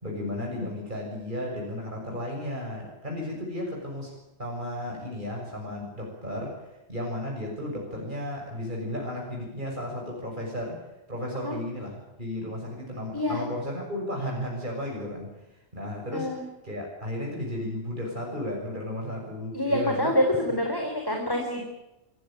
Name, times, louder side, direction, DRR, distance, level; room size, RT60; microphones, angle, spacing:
voice 1, 0.0-4.1 4.4-6.5 6.9-10.8 11.1-15.3 15.7-16.3 16.6-20.1, left 1 dB, 45° right, -1 dB, 6.9 m, -34 dB
voice 2, 16.1-16.4 19.5-21.6, left 1 dB, 20° left, 3 dB, 3.6 m, -26 dB
26.5 x 16.0 x 8.8 m, 0.97 s
omnidirectional pair, 1.2 m